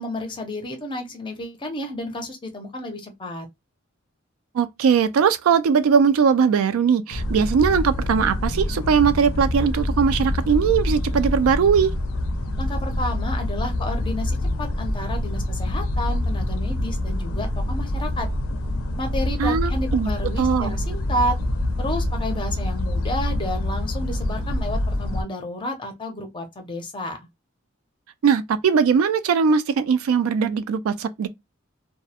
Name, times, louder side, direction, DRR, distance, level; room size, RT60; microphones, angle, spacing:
voice 1, 0.0-3.5 12.6-18.3 19.0-21.4 21.8-27.3, left 1 dB, 20° left, 0.5 m, -31 dB
voice 2, 4.5-11.9 19.4-20.1 20.4-20.7 28.2-31.3, right 6 dB, 80° right, 0.3 m, -20 dB
sound 1, 7.1-25.2, left 1 dB, 85° left, 0.5 m, -26 dB
sound 2, 8.1-21.5, equal, 20° right, 0.6 m, -38 dB
2.3 x 2.0 x 2.7 m
head